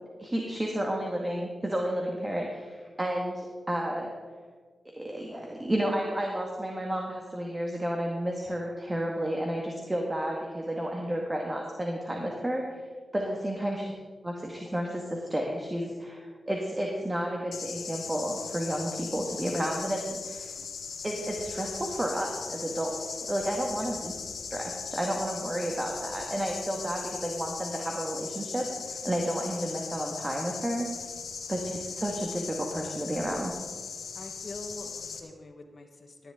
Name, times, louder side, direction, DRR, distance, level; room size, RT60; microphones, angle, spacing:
voice 1, 0.2-4.1 5.0-12.6 13.1-13.9 14.2-20.5 21.0-22.9 23.3-24.1 24.5-30.9 31.5-33.6, right 1 dB, 20° right, 0 dB, 1.8 m, -31 dB
sound 1, 17.5-35.2, left 6 dB, 90° left, 1.0 m, -39 dB
voice 2, 34.1-36.3, left 2 dB, 55° left, 3 dB, 1.5 m, -45 dB
14.0 x 10.5 x 3.8 m, 1.5 s
cardioid pair, 55°, 0 cm